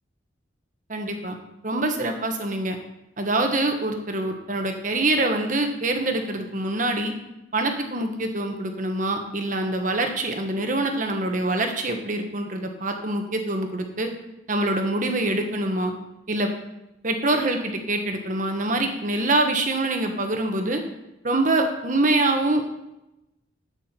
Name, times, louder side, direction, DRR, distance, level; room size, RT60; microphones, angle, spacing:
voice 1, 0.9-1.4 1.6-2.8 3.2-7.1 7.5-14.1 14.5-15.9 16.3-16.5 17.0-20.8 21.2-22.6, right 2 dB, 45° right, 4 dB, 1.5 m, -25 dB
11.5 x 8.8 x 4.6 m, 0.91 s
head